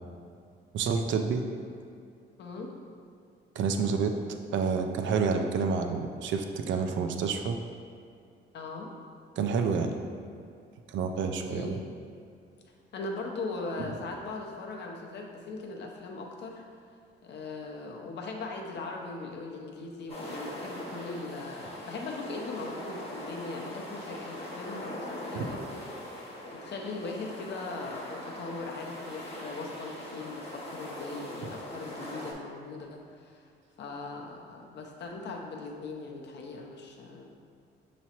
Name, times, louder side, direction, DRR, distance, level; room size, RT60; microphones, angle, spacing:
voice 1, 0.7-1.4 3.6-4.2 4.5-7.6 9.4-9.9 10.9-11.7 25.3-25.5, right 5 dB, 70° right, 5 dB, 0.4 m, -28 dB
voice 2, 2.4-2.7 8.5-8.9 11.5-11.9 12.9-16.6 17.2-25.8 26.5-33.4 33.8-37.3, left 3 dB, 60° left, 0 dB, 0.7 m, -39 dB
sound 1, 20.1-32.3, left 1 dB, 30° left, 1.0 m, -41 dB
5.9 x 3.0 x 2.8 m, 2.4 s
cardioid pair, 90°, 20 cm